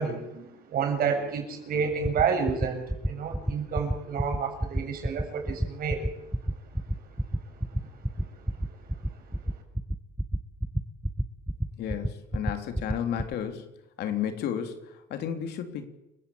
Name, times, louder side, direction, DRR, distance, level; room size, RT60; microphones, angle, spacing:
voice 1, 0.0-6.1 8.2-8.3 8.7-8.8 9.3-9.4, right 6 dB, 60° right, 4 dB, 7.1 m, -30 dB
sound 1, 2.0-13.3, right 1 dB, 5° right, 1.0 m, -28 dB
voice 2, 11.8-13.7 14.0-15.9, left 9 dB, 75° left, 7 dB, 3.4 m, -32 dB
28.5 x 15.5 x 8.8 m, 0.89 s
cardioid pair, 110°, 17 cm